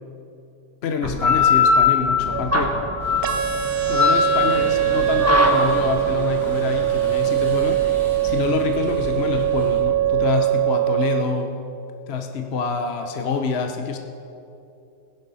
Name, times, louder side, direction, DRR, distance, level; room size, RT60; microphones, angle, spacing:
voice 1, 0.8-2.8 3.9-11.5 12.1-14.0, left 5 dB, 45° left, 5 dB, 0.9 m, -26 dB
sound 1, 1.0-10.2, left 4 dB, 10° right, 1.1 m, -21 dB
sound 2, 3.0-9.8, equal, 40° right, 3.4 m, -37 dB
sound 3, 3.2-11.2, right 13 dB, 80° right, 0.5 m, -22 dB
17.0 x 10.5 x 5.5 m, 2.7 s
omnidirectional pair, 1.9 m